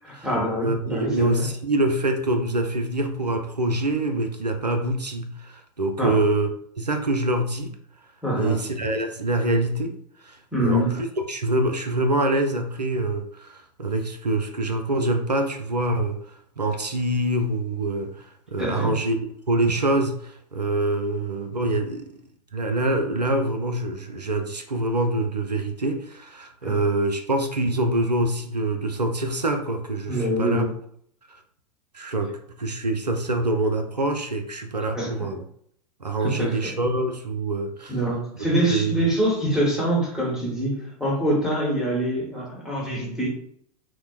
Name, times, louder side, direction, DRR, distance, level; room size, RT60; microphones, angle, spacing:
voice 1, 0.0-1.5 6.0-6.2 8.2-8.6 10.5-10.9 18.6-19.0 26.6-26.8 30.1-30.7 34.9-35.3 36.2-36.7 37.9-43.3, right 1 dB, 5° right, -3 dB, 1.0 m, -25 dB
voice 2, 0.6-6.5 6.8-7.7 8.4-9.9 10.2-16.2 16.6-19.2 19.5-22.1 22.5-30.7 31.9-32.3 32.6-35.4 36.0-37.9 38.7-38.9, right 2 dB, 90° right, 6 dB, 0.4 m, -25 dB
4.3 x 2.0 x 2.3 m, 0.65 s
figure-of-eight pair, 95°, 20 cm